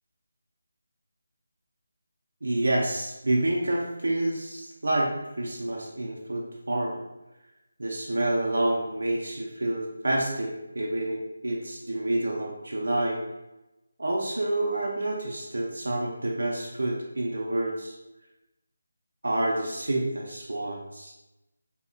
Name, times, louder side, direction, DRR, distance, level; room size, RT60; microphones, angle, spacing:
voice 1, 2.4-7.0 7.8-13.2 14.0-17.9 19.2-21.1, right 1 dB, 85° right, -2 dB, 0.4 m, -28 dB
2.6 x 2.0 x 2.5 m, 0.97 s
figure-of-eight pair, 170°, 0 cm